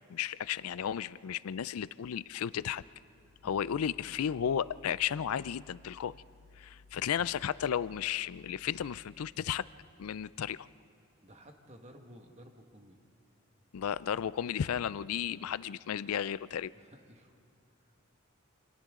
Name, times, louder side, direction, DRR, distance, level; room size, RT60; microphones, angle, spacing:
voice 1, 0.1-2.8 3.4-6.2 6.6-9.7 10.0-10.7 13.7-16.7, left 8 dB, 90° left, 18 dB, 0.4 m, -34 dB
voice 2, 11.2-13.0 16.7-17.4 17.8-17.9, equal, 30° right, 3 dB, 1.6 m, -55 dB
28.5 x 26.0 x 3.7 m, 2.3 s
head